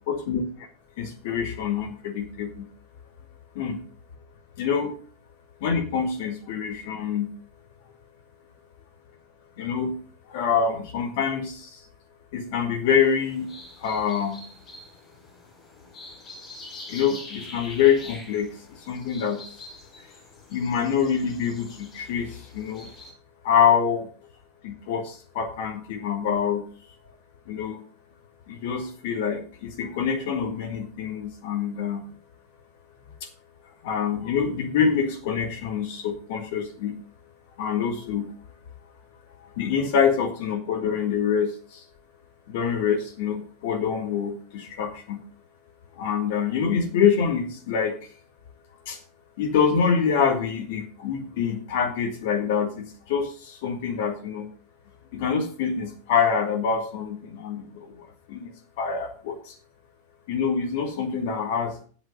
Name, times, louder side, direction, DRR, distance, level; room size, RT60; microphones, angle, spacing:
voice 1, 0.1-0.4 1.0-2.7 3.6-3.8 4.6-5.0 5.6-7.3 9.6-9.9 10.3-11.7 12.3-13.5 13.8-14.4 16.9-18.5 18.9-19.4 20.5-22.9 23.4-24.1 24.6-26.6 27.5-27.8 28.5-32.0 33.8-36.9 37.6-38.3 39.6-41.8 42.5-45.2 46.0-47.9 48.9-49.0 49.4-54.5 55.1-57.9 58.3-58.5 58.8-59.5 60.3-61.8, left 7 dB, 50° left, 5 dB, 1.7 m, -25 dB
sound 1, 12.9-23.1, left 2 dB, 25° left, 4.4 m, -45 dB
9.6 x 7.9 x 5.3 m, 0.41 s
figure-of-eight pair, 90°, 0 cm